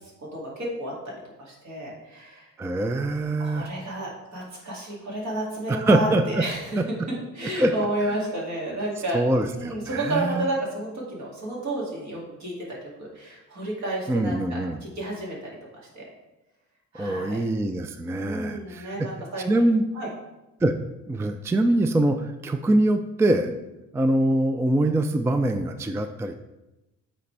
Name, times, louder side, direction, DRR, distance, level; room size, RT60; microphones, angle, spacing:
voice 1, 0.2-2.5 3.4-6.8 7.1-9.2 9.5-12.5 13.0-15.5 15.9-16.0 16.9-17.4 18.1-19.5 19.9-20.1 23.4-23.5, right 1 dB, 60° right, -3 dB, 2.4 m, -31 dB
voice 2, 2.6-3.7 5.7-6.4 7.6-7.7 8.1-8.2 9.1-10.4 14.1-14.8 16.9-19.1 19.5-19.8 20.6-20.7 21.1-23.5 23.9-26.4, right 1 dB, 10° right, 8 dB, 0.3 m, -23 dB
8.3 x 4.2 x 3.3 m, 0.99 s
cardioid pair, 90°, 30 cm